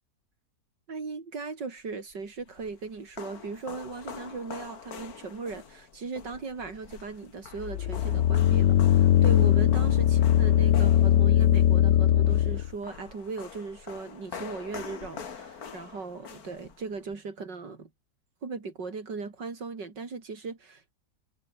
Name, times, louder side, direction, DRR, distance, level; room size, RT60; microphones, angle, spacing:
voice 1, 0.9-17.9 18.4-20.9, right 4 dB, 85° right, 4.0 m, -38 dB
sound 1, 2.1-17.1, left 6 dB, 60° left, 2.2 m, -45 dB
sound 2, 7.6-12.7, left 12 dB, 85° left, 1.5 m, -21 dB
omnidirectional pair, 1.8 m